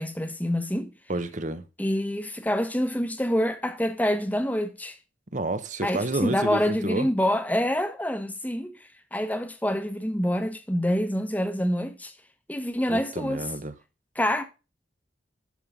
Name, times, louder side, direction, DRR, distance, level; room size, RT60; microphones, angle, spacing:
voice 1, 0.0-0.9 1.8-4.9 5.8-12.1 12.5-13.5 14.1-14.4, equal, 10° left, 1.1 m, -26 dB
voice 2, 1.1-1.6 5.3-7.1 12.9-13.7, right 2 dB, 40° right, 0.9 m, -29 dB
12.0 x 5.7 x 3.6 m
head